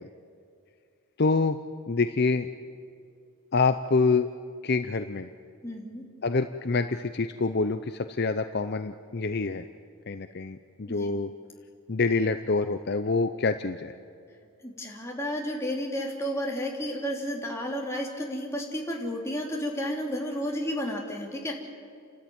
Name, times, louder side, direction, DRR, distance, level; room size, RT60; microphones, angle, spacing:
voice 1, 1.2-1.6 1.9-2.5 3.5-4.3 4.6-5.3 6.2-9.7 10.1-11.3 11.9-13.9, left 4 dB, 50° left, 9 dB, 0.6 m, -26 dB
voice 2, 5.6-6.0 10.9-11.1 14.6-21.5, equal, 15° left, -1 dB, 3.1 m, -32 dB
30.0 x 13.0 x 9.4 m, 2.4 s
head